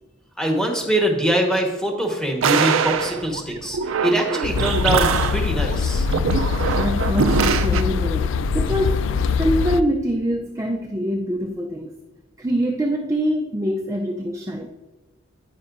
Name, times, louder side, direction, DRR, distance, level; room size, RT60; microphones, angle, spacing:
voice 1, 0.4-5.1 5.3-6.1, right 1 dB, 5° left, 1.2 m, -23 dB
sound 1, 2.4-7.8, right 6 dB, 85° right, 0.5 m, -23 dB
sound 2, 4.4-9.8, left 5 dB, 70° left, 0.3 m, -23 dB
voice 2, 6.7-9.1 9.4-11.9 12.4-14.7, equal, 15° right, 0.4 m, -24 dB
9.5 x 9.3 x 2.6 m
head